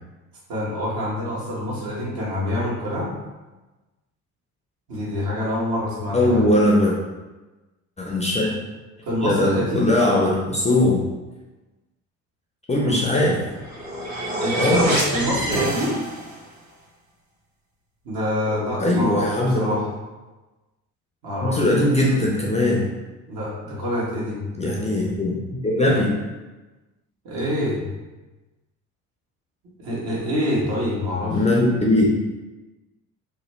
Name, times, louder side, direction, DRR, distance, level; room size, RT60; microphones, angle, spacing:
voice 1, 0.5-3.2 4.9-6.5 8.4-8.5 9.1-9.9 12.8-13.0 14.4-16.0 18.0-19.9 21.2-21.6 23.3-24.4 27.2-27.8 29.8-31.4, equal, 60° right, -5 dB, 1.3 m, -26 dB
voice 2, 6.1-6.9 8.0-8.5 9.2-11.0 12.7-13.4 14.6-14.9 18.5-19.8 21.4-22.9 24.6-25.4 25.6-26.2 31.3-32.1, left 1 dB, 15° left, -2 dB, 0.5 m, -20 dB
sound 1, 13.4-16.5, right 1 dB, 40° right, 1.3 m, -26 dB
3.0 x 2.2 x 3.1 m, 1.1 s
hypercardioid pair, 55°, 45 cm